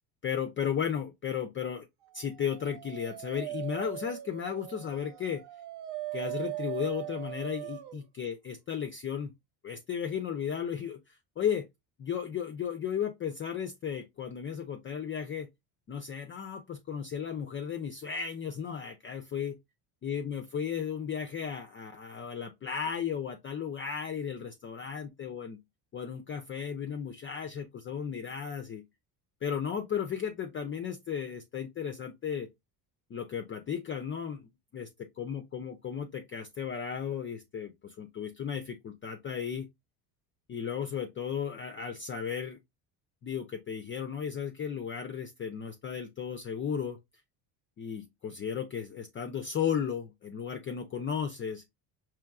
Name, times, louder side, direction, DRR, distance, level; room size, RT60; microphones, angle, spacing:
voice 1, 0.2-1.9 2.1-5.4 6.1-9.3 9.6-11.7 12.0-15.5 15.9-19.6 20.0-25.6 25.9-28.8 29.4-32.5 33.1-34.9 35.2-39.7 40.5-42.6 43.2-47.0 47.8-51.6, left 7 dB, 30° left, 0.3 m, -35 dB
Dog, 2.4-8.0, right 15 dB, 60° right, 0.6 m, -40 dB
4.6 x 3.1 x 2.3 m
cardioid pair, 115°, 48 cm